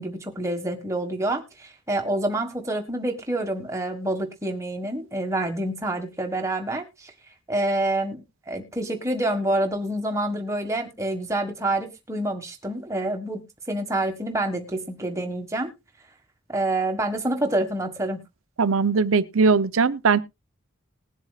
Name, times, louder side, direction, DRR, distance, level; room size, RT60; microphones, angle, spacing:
voice 1, 0.0-7.1 7.5-8.2 8.5-15.7 16.5-18.2, right 1 dB, 15° right, 1.6 m, -27 dB
voice 2, 18.6-20.2, right 4 dB, 75° right, 0.6 m, -20 dB
20.0 x 7.4 x 2.4 m
head